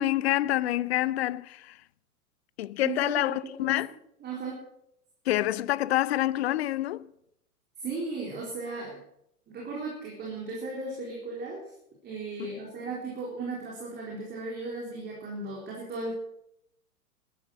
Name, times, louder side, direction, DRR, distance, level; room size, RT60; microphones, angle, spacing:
voice 1, 0.0-1.8 2.6-3.9 5.3-7.1, left 14 dB, 45° left, 0.6 m, -27 dB
voice 2, 2.8-3.8 4.2-4.6 7.8-9.0 9.5-11.6 12.0-16.1, right 3 dB, 20° right, 4.1 m, -36 dB
14.0 x 12.0 x 6.3 m
figure-of-eight pair, 105°, 45 cm